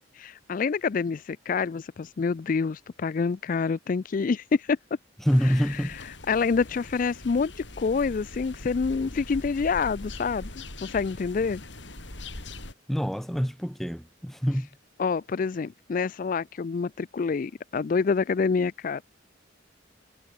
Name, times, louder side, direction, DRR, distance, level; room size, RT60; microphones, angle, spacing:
voice 1, 0.1-4.8 5.4-10.5 10.8-11.6 15.0-19.1, left 5 dB, 45° left, 0.4 m, -27 dB
voice 2, 5.2-6.0 12.9-14.7, equal, ahead, 2.0 m, -26 dB
sound 1, 5.3-12.7, left 2 dB, 70° left, 5.7 m, -41 dB
head